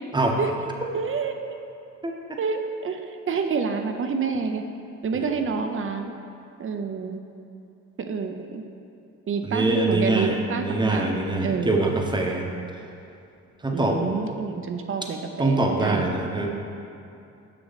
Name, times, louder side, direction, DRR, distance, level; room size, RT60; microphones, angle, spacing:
voice 1, 0.9-1.4 2.4-4.6 5.0-6.1 6.6-7.2 8.0-8.6 9.3-11.8 13.7-16.1, right 5 dB, 45° right, 5 dB, 0.6 m, -28 dB
voice 2, 2.0-2.4 5.1-5.3 9.4-12.5 13.6-14.0 15.4-16.5, right 2 dB, 15° right, 1 dB, 0.9 m, -24 dB
6.6 x 6.0 x 4.0 m, 2.6 s
cardioid pair, 90°, 30 cm